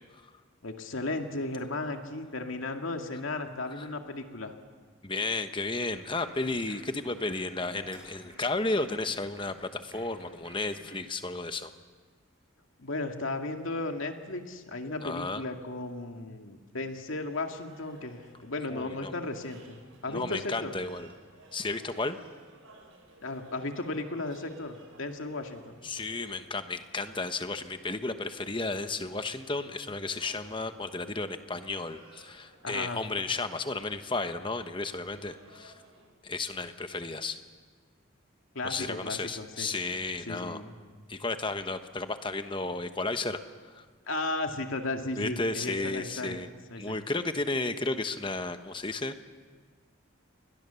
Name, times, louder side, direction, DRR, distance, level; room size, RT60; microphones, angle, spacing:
voice 1, 0.6-4.5 12.8-20.7 23.2-25.8 32.6-33.0 38.5-39.7 40.3-40.8 44.1-46.4 46.7-47.0, left 2 dB, 75° left, 4 dB, 2.2 m, -35 dB
voice 2, 5.0-11.7 15.0-15.4 18.7-19.1 20.1-21.1 21.5-22.2 25.8-35.7 36.2-37.4 38.6-40.6 41.1-43.8 45.2-46.5 46.8-49.2, left 3 dB, 25° left, 9 dB, 1.1 m, -33 dB
sound 1, 5.9-11.0, right 1 dB, 15° right, 6.4 m, -54 dB
sound 2, 17.3-36.1, right 2 dB, 85° right, 5.8 m, -57 dB
29.5 x 22.0 x 7.0 m, 1.5 s
head